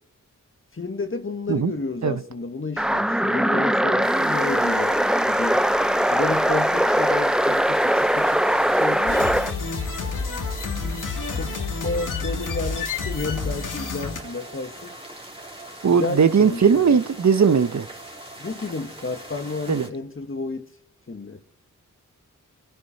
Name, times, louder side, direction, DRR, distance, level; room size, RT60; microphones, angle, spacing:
voice 1, 0.7-5.7 6.1-9.3 10.0-10.3 11.4-15.0 15.9-16.9 18.4-20.7 21.1-21.4, left 3 dB, 40° left, 1.6 m, -31 dB
sound 1, 2.8-9.5, equal, ahead, 0.5 m, -21 dB
sound 2, 4.0-19.9, right 1 dB, 15° right, 3.3 m, -41 dB
sound 3, 9.1-14.2, left 4 dB, 80° left, 1.9 m, -29 dB
voice 2, 15.8-17.9 19.7-19.9, right 6 dB, 60° right, 1.1 m, -18 dB
28.5 x 10.5 x 4.3 m
cardioid pair, 50°, 31 cm